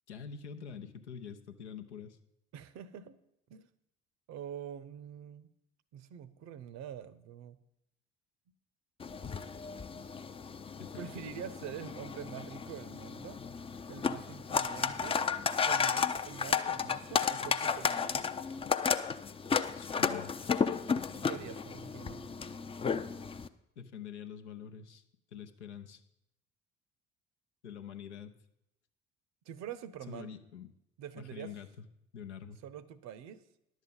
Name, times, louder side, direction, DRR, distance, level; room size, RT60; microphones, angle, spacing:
voice 1, 0.1-2.2 10.2-10.4 10.8-11.1 19.8-20.3 23.8-25.0 25.3-26.0 27.6-28.3 30.1-30.7 31.2-31.8 32.1-32.6, left 7 dB, 80° left, 6 dB, 0.7 m, -46 dB
voice 2, 2.5-3.2 3.5-3.7 4.3-5.5 5.9-7.6 11.0-13.4 13.9-15.2 15.7-18.2 21.1-22.3 29.5-30.3 31.0-31.5 32.6-33.4, right 9 dB, 50° right, 16 dB, 0.7 m, -45 dB
sound 1, 9.0-23.5, left 6 dB, 15° left, 0.4 m, -33 dB
11.0 x 7.3 x 5.4 m, 0.81 s
figure-of-eight pair, 50°, 35 cm